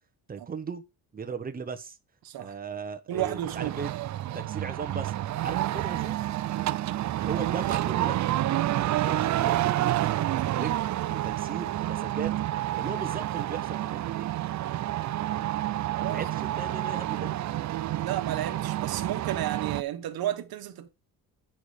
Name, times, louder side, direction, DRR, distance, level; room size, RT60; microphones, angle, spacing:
voice 1, 0.3-0.8 1.1-2.0 2.4-3.9 4.3-5.1 5.4-6.2 7.2-8.2 9.0-10.0 10.3-12.3 12.7-14.3 16.0-17.4, right 5 dB, 25° right, 1.0 m, -37 dB
voice 2, 2.2-2.6 3.1-3.8 6.5-6.8 10.4-10.6 15.9-16.2 17.9-20.9, right 12 dB, 75° right, 1.2 m, -33 dB
sound 1, 3.2-19.8, right 13 dB, 50° right, 0.5 m, -29 dB
10.0 x 6.0 x 4.9 m
cardioid pair, 160°, 37 cm